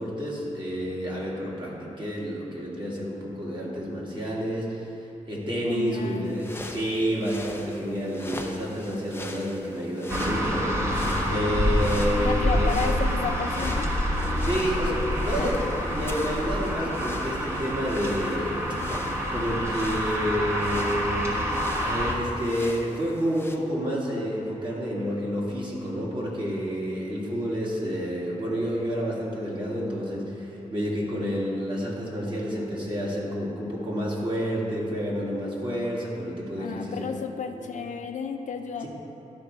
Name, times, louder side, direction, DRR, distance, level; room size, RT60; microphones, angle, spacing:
voice 1, 0.0-4.9 5.2-10.7 11.3-12.7 14.4-18.6 19.3-21.4 21.8-37.1 37.7-37.8, equal, 40° right, -5 dB, 2.1 m, -29 dB
voice 2, 5.7-6.3 12.2-13.9 15.4-15.7 36.6-38.9, left 6 dB, 70° left, 5 dB, 0.6 m, -32 dB
sound 1, 6.2-23.6, left 2 dB, 15° left, 0.7 m, -42 dB
sound 2, 10.1-22.1, equal, 20° right, 1.3 m, -27 dB
12.0 x 5.2 x 4.7 m, 2.8 s
wide cardioid pair, 90°, 13 cm